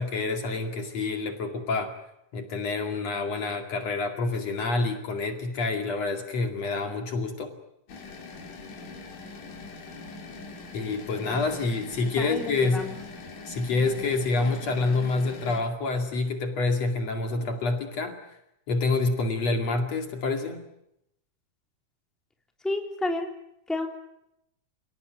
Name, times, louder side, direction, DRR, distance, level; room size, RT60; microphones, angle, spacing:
voice 1, 0.0-1.9 2.3-7.5 10.7-12.9 13.5-18.2 18.7-20.6, left 3 dB, 55° left, 5 dB, 3.3 m, -27 dB
sound 1, 7.9-15.6, left 3 dB, 75° left, 4.7 m, -42 dB
voice 2, 12.2-13.0 22.6-23.3 23.7-23.9, left 2 dB, ahead, 3 dB, 3.1 m, -30 dB
29.5 x 18.5 x 9.3 m, 0.81 s
omnidirectional pair, 3.7 m